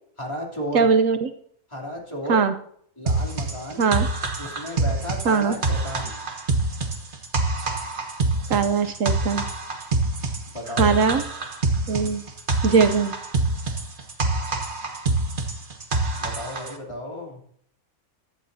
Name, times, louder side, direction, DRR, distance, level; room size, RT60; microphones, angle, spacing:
voice 1, 0.2-0.9 1.7-2.4 3.0-3.9 4.4-6.2 10.5-10.9 16.2-17.4, equal, 20° left, -1 dB, 3.1 m, -33 dB
voice 2, 0.7-1.3 2.3-2.5 3.8-4.1 5.2-5.5 8.5-9.5 10.8-11.2 11.9-12.2 12.6-13.1, right 5 dB, 70° right, 9 dB, 1.2 m, -20 dB
sound 1, 3.1-16.8, right 2 dB, 40° right, 1.4 m, -26 dB
15.5 x 11.5 x 2.7 m, 0.64 s
omnidirectional pair, 1.4 m